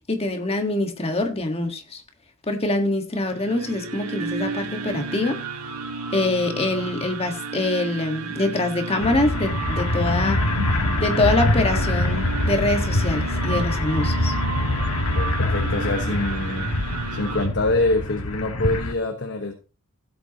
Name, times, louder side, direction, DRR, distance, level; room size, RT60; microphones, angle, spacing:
voice 1, 0.1-2.0 2.5-5.4 6.1-10.4 11.0-14.3, left 2 dB, 25° left, 5 dB, 1.6 m, -24 dB
sound 1, 3.2-17.5, right 4 dB, 80° right, 2.0 m, -33 dB
sound 2, 9.0-18.9, left 1 dB, 80° left, 1.5 m, -24 dB
voice 2, 15.1-16.7 17.1-19.5, left 2 dB, 55° left, 5 dB, 1.2 m, -25 dB
16.0 x 8.0 x 2.9 m, 0.34 s
head